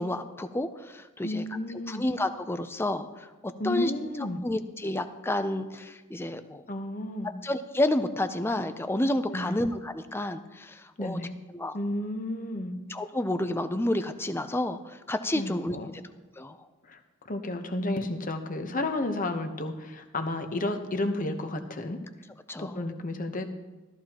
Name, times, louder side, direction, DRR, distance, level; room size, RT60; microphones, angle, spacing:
voice 1, 0.0-1.4 1.9-4.1 4.4-6.6 7.4-11.2 11.5-11.7 12.9-15.8 16.4-16.6 22.5-22.8, left 1 dB, 10° left, 9 dB, 0.5 m, -30 dB
voice 2, 1.2-2.0 3.6-4.4 6.7-7.3 9.3-9.5 11.0-11.3 11.7-12.7 15.3-16.0 16.8-17.0 17.2-22.0 22.6-23.5, left 2 dB, 40° left, 6 dB, 1.0 m, -32 dB
13.5 x 13.5 x 3.0 m, 1.2 s
head